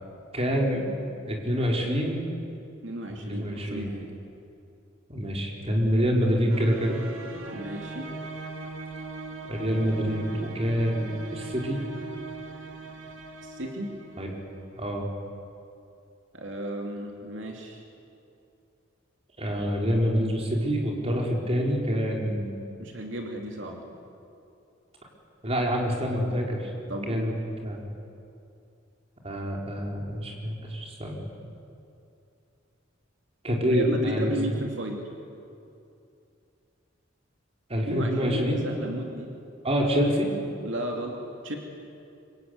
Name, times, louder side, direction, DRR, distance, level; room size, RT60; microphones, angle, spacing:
voice 1, 0.3-0.8 1.3-2.2 3.2-3.9 5.1-7.0 9.5-11.8 14.2-14.3 14.8-15.1 19.4-22.5 25.4-26.7 27.1-27.3 27.6-27.8 29.2-31.2 33.4-34.3 37.7-38.6 39.6-40.3, equal, 30° right, -1 dB, 4.6 m, -26 dB
voice 2, 2.8-4.1 7.5-8.1 13.4-13.9 16.3-17.8 22.8-23.9 26.9-27.4 33.7-35.1 37.8-39.3 40.6-41.6, equal, 70° right, 1 dB, 2.7 m, -34 dB
sound 1, 6.5-14.9, right 3 dB, 90° right, 2.6 m, -40 dB
25.5 x 24.0 x 9.6 m, 2.6 s
head